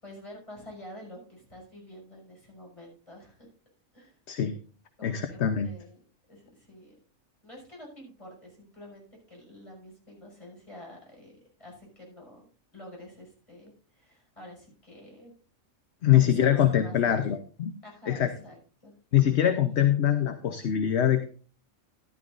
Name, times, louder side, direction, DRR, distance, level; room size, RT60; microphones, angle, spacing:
voice 1, 0.0-3.5 3.9-4.2 5.0-6.0 6.3-6.9 7.4-11.3 11.6-12.4 12.7-15.3 16.1-17.3 17.8-18.6 18.8-18.9, left 1 dB, 25° left, -2 dB, 6.3 m, -47 dB
voice 2, 4.3-4.6 5.0-5.7 16.0-17.7 18.1-18.3 19.1-21.2, left 10 dB, 55° left, 8 dB, 1.0 m, -23 dB
13.5 x 12.0 x 2.6 m, 0.41 s
omnidirectional pair, 1.4 m